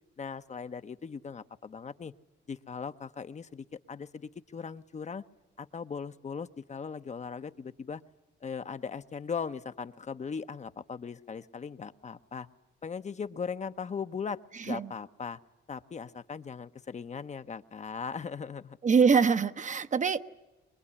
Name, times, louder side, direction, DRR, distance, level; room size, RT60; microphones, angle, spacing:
voice 1, 0.2-2.1 2.5-5.2 5.6-8.0 8.4-12.5 12.8-15.4 15.7-18.8, left 6 dB, 35° left, 0.9 m, -39 dB
voice 2, 18.8-20.2, right 5 dB, 40° right, 0.9 m, -24 dB
23.5 x 21.5 x 9.9 m
cardioid pair, 90°, 20 cm